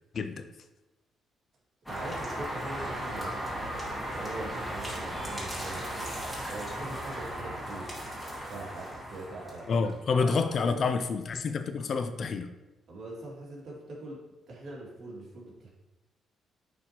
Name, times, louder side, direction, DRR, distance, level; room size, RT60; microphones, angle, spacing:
voice 1, 0.1-0.5 9.7-12.5, left 5 dB, 50° left, 9 dB, 0.5 m, -28 dB
sound 1, 1.9-10.0, right 1 dB, ahead, 2.3 m, -36 dB
voice 2, 1.9-3.3 4.1-6.1 6.5-8.0 8.5-9.9 10.1-10.8 12.9-14.2 14.5-15.7, right 2 dB, 60° right, -4 dB, 2.3 m, -42 dB
9.1 x 4.2 x 2.9 m, 1.0 s
cardioid pair, 90°, 0 cm